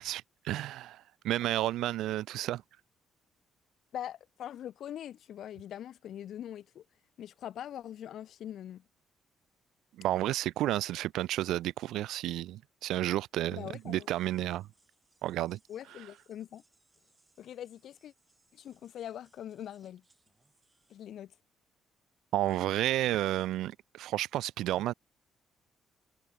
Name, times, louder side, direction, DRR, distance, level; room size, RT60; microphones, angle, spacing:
voice 1, 0.0-2.6 10.0-14.7 15.2-15.6 22.3-24.9, right 14 dB, 85° right, 0.4 m, -31 dB
voice 2, 3.9-6.8 7.2-8.8 13.5-14.1 15.7-16.6 17.4-18.1 18.5-20.0 20.9-21.3, left 10 dB, 70° left, 1.5 m, -42 dB
sound 1, 13.8-21.2, right 2 dB, 20° right, 7.4 m, -72 dB
cardioid pair, 90°, 0 cm